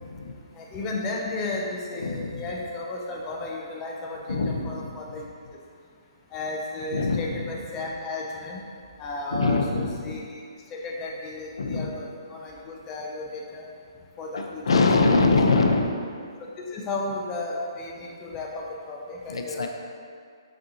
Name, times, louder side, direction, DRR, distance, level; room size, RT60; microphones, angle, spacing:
voice 1, 0.0-0.4 2.0-2.5 4.3-4.9 6.9-7.5 9.3-10.2 11.6-11.9 14.3-15.9 19.3-19.7, left 3 dB, 85° left, 3 dB, 0.4 m, -23 dB
voice 2, 0.6-5.3 6.3-8.6 9.0-10.4 10.7-13.6 14.2-15.1 15.5-15.6 16.6-19.7, left 2 dB, 15° left, -2 dB, 0.4 m, -34 dB
4.2 x 3.6 x 2.6 m, 2.2 s
hypercardioid pair, 160°, 3 cm